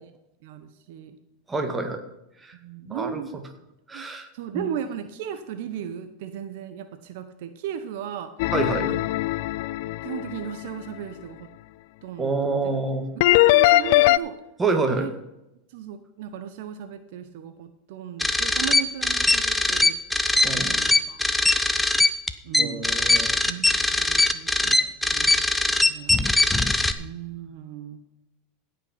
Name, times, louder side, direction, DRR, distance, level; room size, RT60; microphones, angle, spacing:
voice 1, 0.4-1.2 2.5-3.4 3.9-4.1 4.3-8.3 8.9-9.0 9.4-9.5 10.0-11.5 12.0-12.6 13.1-14.4 15.0-15.1 15.7-20.0 20.4-21.2 22.4-22.9 23.4-26.1 27.0-28.0, right 9 dB, 65° right, 9 dB, 0.9 m, -36 dB
voice 2, 1.5-2.0 2.4-2.5 2.8-3.2 3.9-4.3 4.5-4.6 8.5-8.9 12.2-13.1 14.6-15.1 20.4-20.8 22.6-23.3, right 3 dB, 15° right, 6 dB, 2.0 m, -27 dB
sound 1, 8.4-10.5 13.2-14.2, left 18 dB, 65° left, 0.4 m, -20 dB
sound 2, 18.2-26.9, left 2 dB, 5° left, 0.8 m, -21 dB
16.5 x 5.7 x 5.8 m, 0.90 s
hypercardioid pair, 100°, 0 cm